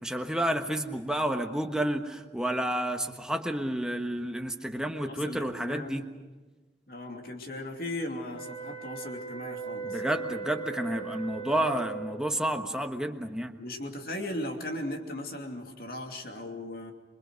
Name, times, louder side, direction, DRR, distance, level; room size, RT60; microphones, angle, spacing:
voice 1, 0.0-6.0 9.8-13.6, right 1 dB, 5° right, 4 dB, 1.3 m, -30 dB
voice 2, 5.0-6.1 6.9-10.0 13.6-16.9, left 1 dB, 55° left, 3 dB, 2.8 m, -37 dB
sound 1, 8.3-12.2, right 5 dB, 30° left, 5.0 m, -38 dB
26.5 x 23.5 x 6.5 m, 1.2 s
head